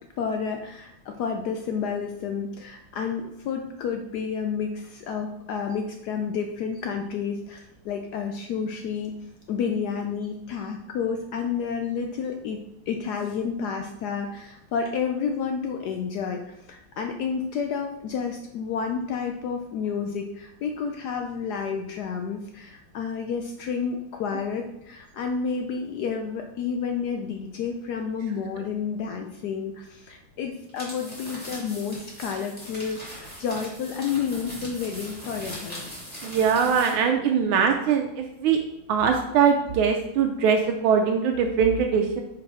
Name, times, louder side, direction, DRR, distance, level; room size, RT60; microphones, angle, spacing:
voice 1, 0.2-9.1 9.5-12.6 12.9-35.9, left 6 dB, 80° left, 4 dB, 0.9 m, -30 dB
sound 1, 30.7-37.0, equal, 5° left, 2.2 m, -40 dB
voice 2, 36.2-38.6 38.9-42.2, right 6 dB, 80° right, 3 dB, 1.4 m, -22 dB
4.8 x 4.7 x 4.6 m, 0.83 s
omnidirectional pair, 2.3 m